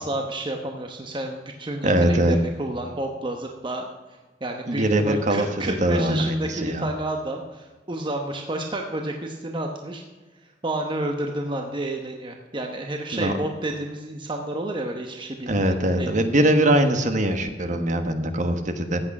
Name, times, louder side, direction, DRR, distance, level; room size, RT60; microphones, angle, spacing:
voice 1, 0.0-10.0 10.4-16.1, right 1 dB, 30° right, 3 dB, 1.0 m, -30 dB
voice 2, 1.8-2.4 4.7-6.9 13.1-13.4 15.5-19.0, right 1 dB, 45° right, 7 dB, 1.3 m, -22 dB
14.5 x 8.7 x 5.3 m, 1.3 s
head